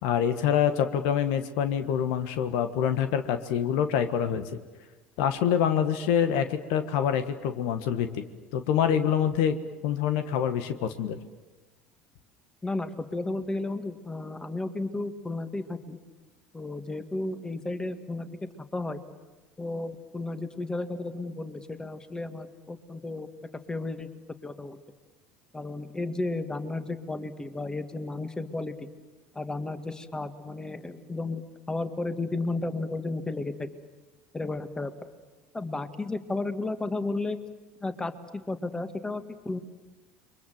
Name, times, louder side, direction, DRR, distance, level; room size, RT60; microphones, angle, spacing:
voice 1, 0.0-4.4 5.2-8.2 8.5-9.6 9.8-11.2, left 8 dB, 65° left, 9 dB, 1.5 m, -26 dB
voice 2, 12.6-16.0 16.5-19.0 19.6-23.3 23.7-24.1 24.4-24.8 25.5-28.9 29.3-31.4 31.7-33.7 34.3-34.9 35.5-37.4 37.8-39.6, left 2 dB, 15° left, 9 dB, 2.1 m, -33 dB
29.5 x 23.5 x 7.8 m, 1.2 s
hypercardioid pair, 75°, 5 cm